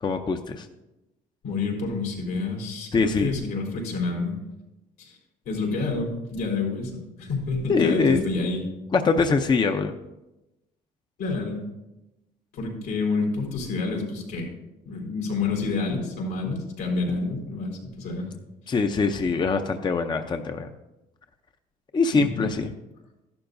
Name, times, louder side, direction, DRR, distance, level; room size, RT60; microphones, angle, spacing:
voice 1, 0.0-0.7 2.9-3.4 7.7-8.2 8.9-9.9 18.7-20.7 21.9-22.7, left 4 dB, 25° left, 6 dB, 0.6 m, -23 dB
voice 2, 1.4-4.4 5.0-5.2 5.4-8.6 11.2-11.6 12.5-14.5 14.8-18.3 22.1-22.4, left 3 dB, 85° left, -2 dB, 4.1 m, -28 dB
14.0 x 11.5 x 2.6 m, 0.97 s
cardioid pair, 110°, 17 cm